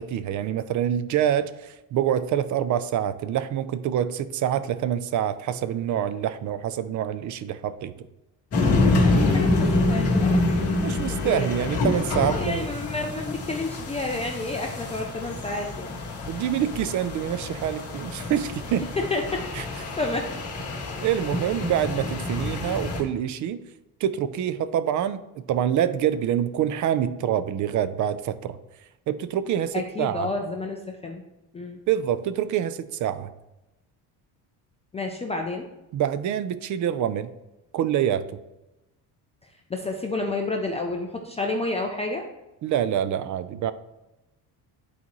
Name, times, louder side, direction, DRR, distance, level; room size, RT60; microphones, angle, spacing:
voice 1, 0.0-7.9 10.8-12.7 16.3-18.9 19.5-19.7 21.0-23.6 24.0-28.6 29.1-30.3 31.9-33.3 35.9-37.3 37.7-38.2 42.6-43.7, right 10 dB, 50° right, 14 dB, 0.4 m, -26 dB
sound 1, 8.5-23.0, left 2 dB, 35° left, 1.7 m, -26 dB
voice 2, 9.0-10.6 10.8-11.5 12.2-15.9 19.1-19.5 20.0-20.4 22.3-22.4 29.7-31.2 31.5-31.8 34.9-35.7 39.7-42.3, left 2 dB, 15° left, 1 dB, 0.4 m, -30 dB
11.0 x 4.1 x 3.0 m, 0.97 s
cardioid pair, 150°, 41 cm